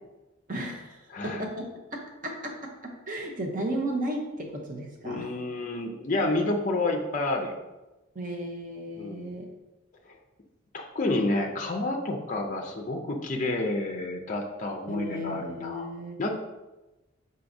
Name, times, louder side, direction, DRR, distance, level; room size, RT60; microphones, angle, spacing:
voice 1, 0.5-2.6 2.8-5.3 8.1-9.5 14.9-16.3, right 1 dB, 40° right, 1 dB, 0.7 m, -34 dB
voice 2, 1.1-1.4 5.0-7.7 9.0-9.4 10.0-10.2 10.7-15.9 16.2-16.3, left 2 dB, 35° left, 2 dB, 0.4 m, -29 dB
4.6 x 3.9 x 2.6 m, 1.0 s
head